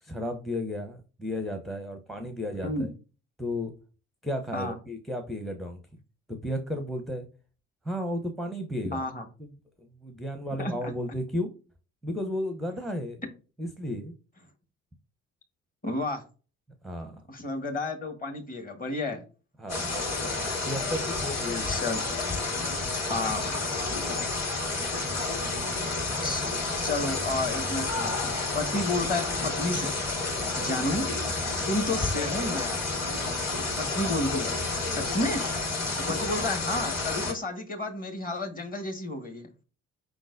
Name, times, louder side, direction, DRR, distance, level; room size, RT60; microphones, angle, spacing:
voice 1, 0.0-2.9 3.4-3.7 4.2-5.8 6.3-7.3 7.8-9.0 9.4-9.5 9.8-11.5 12.0-13.2 13.6-14.1 16.8-17.2 19.6-19.9 20.6-21.8 24.0-24.3, left 1 dB, ahead, 6 dB, 0.6 m, -33 dB
voice 2, 8.9-9.2 10.6-10.7 15.8-16.2 17.3-19.2 21.6-22.0 23.1-23.6 26.2-26.4 26.8-30.0 30.5-31.1 31.7-32.8 33.8-34.6 34.9-35.5 36.0-39.5, left 2 dB, 20° left, 5 dB, 1.3 m, -31 dB
sound 1, 19.7-37.3, left 3 dB, 40° left, 2.2 m, -30 dB
5.0 x 3.8 x 2.5 m, 0.36 s
figure-of-eight pair, 50°, 39 cm